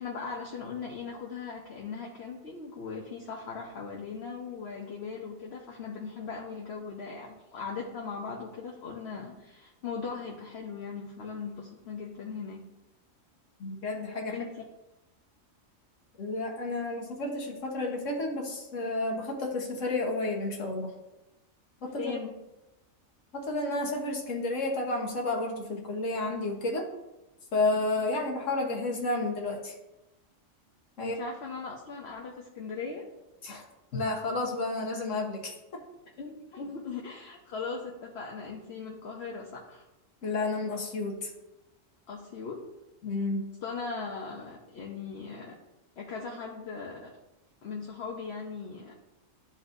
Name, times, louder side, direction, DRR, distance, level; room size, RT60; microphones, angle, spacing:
voice 1, 0.0-12.6 14.3-14.5 22.0-22.3 31.0-33.1 36.2-39.8 42.1-42.6 43.6-45.5 46.0-47.1 47.6-48.9, left 5 dB, 55° left, -1 dB, 1.0 m, -39 dB
voice 2, 13.6-14.4 16.2-20.9 21.8-22.0 23.3-26.8 27.5-29.7 31.0-31.1 33.4-33.6 33.9-35.5 40.2-41.3 43.0-43.4, left 2 dB, 70° left, 0 dB, 1.6 m, -31 dB
12.0 x 4.2 x 2.6 m, 0.97 s
omnidirectional pair, 1.4 m